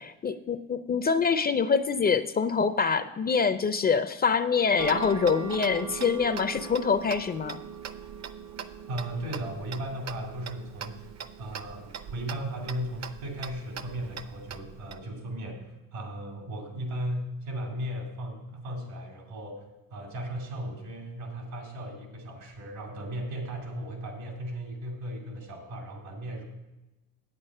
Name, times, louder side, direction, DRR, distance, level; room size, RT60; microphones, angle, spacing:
voice 1, 0.0-7.6, left 5 dB, 25° left, 12 dB, 0.4 m, -25 dB
Tick-tock, 4.8-15.0, right 7 dB, 45° right, 0.7 m, -40 dB
voice 2, 8.9-11.0 11.4-26.4, right 1 dB, 75° right, 2 dB, 2.8 m, -36 dB
8.4 x 8.2 x 5.4 m, 1.0 s
cardioid pair, 90°, 36 cm